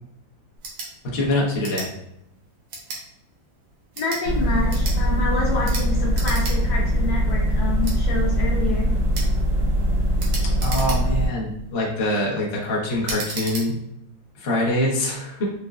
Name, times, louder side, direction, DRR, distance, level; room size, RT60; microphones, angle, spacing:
sound 1, 0.6-0.9 1.6-1.9 2.7-3.0 3.8-4.2 4.7-5.0 5.6-5.9 6.1-6.6 6.9-7.0 7.8-8.0 9.1-9.3 10.2-11.3 11.8-12.1 13.0-13.7, right 3 dB, 85° right, 1.6 m, -33 dB
voice 1, 1.1-1.9 10.6-13.7 14.3-15.5, left 1 dB, 50° left, -4 dB, 0.7 m, -24 dB
voice 2, 4.0-8.9, left 3 dB, 70° left, -2 dB, 1.2 m, -27 dB
sound 2, 4.2-11.3, equal, 60° right, 0.9 m, -21 dB
4.1 x 2.2 x 2.3 m, 0.83 s
omnidirectional pair, 2.1 m